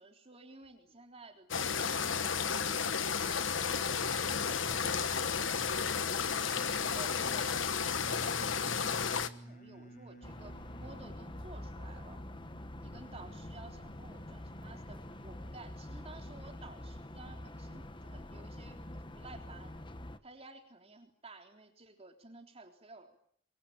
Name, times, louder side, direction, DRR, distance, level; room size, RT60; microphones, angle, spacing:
voice 1, 0.0-6.1 6.6-12.2 12.8-19.7 20.2-23.2, right 3 dB, 30° right, 4 dB, 3.6 m, -54 dB
sound 1, 1.5-9.3, left 6 dB, 85° left, 1.3 m, -32 dB
sound 2, 3.9-15.8, right 1 dB, 45° left, 6.6 m, -52 dB
sound 3, 10.2-20.2, left 1 dB, 25° left, 1.3 m, -46 dB
24.0 x 23.5 x 8.9 m, 0.66 s
head